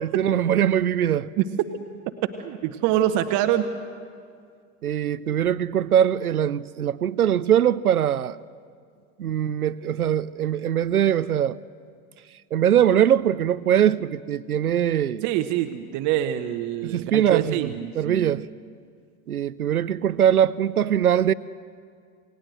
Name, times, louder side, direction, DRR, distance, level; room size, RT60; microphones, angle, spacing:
voice 1, 0.0-1.3 4.8-8.4 9.2-11.6 12.5-15.2 16.8-17.5 18.0-18.5 19.3-21.3, right 10 dB, 80° right, 0.6 m, -21 dB
voice 2, 2.4-3.7 15.2-18.4, right 12 dB, 40° right, 1.1 m, -25 dB
28.0 x 18.5 x 7.9 m
figure-of-eight pair, 80°, 44 cm